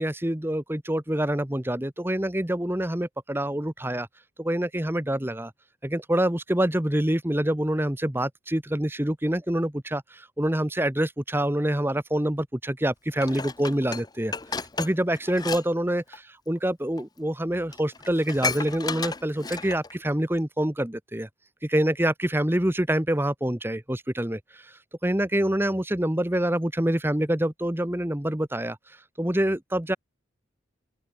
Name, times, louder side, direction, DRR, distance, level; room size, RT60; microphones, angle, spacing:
voice 1, 0.0-4.1 4.4-5.5 5.8-16.0 16.5-21.3 21.6-30.0, right 1 dB, 10° right, 1.0 m, -26 dB
Dishes pots and pans, 13.2-15.6 15.9-16.2 17.0-17.1 17.4-17.5 17.7-19.9 20.4-20.5, left 4 dB, 20° left, 0.9 m, -33 dB
open air
head